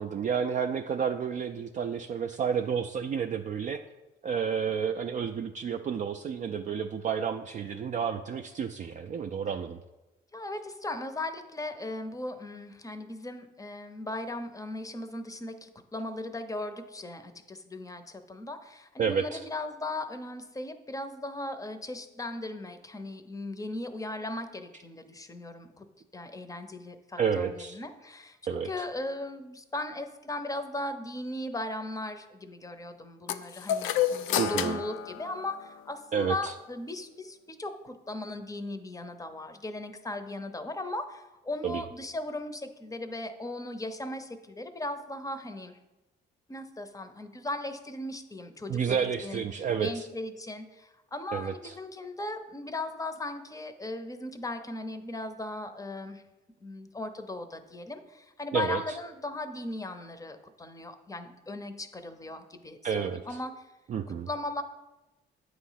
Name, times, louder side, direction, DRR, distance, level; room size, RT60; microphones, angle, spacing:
voice 1, 0.0-3.8 4.2-9.8 19.0-19.4 27.2-27.8 28.5-28.7 34.4-34.8 36.1-36.5 41.6-41.8 48.7-50.1 51.3-51.7 58.5-59.0 62.8-63.4 63.9-64.3, right 7 dB, 40° right, 5 dB, 0.4 m, -30 dB
voice 2, 10.3-25.8 26.1-45.8 46.5-49.4 49.8-56.2 56.6-63.7 64.1-64.6, left 2 dB, 15° left, 9 dB, 0.6 m, -38 dB
sound 1, 33.3-36.0, left 11 dB, 85° left, 0.4 m, -30 dB
8.3 x 3.1 x 5.6 m, 1.0 s
cardioid pair, 90°, 20 cm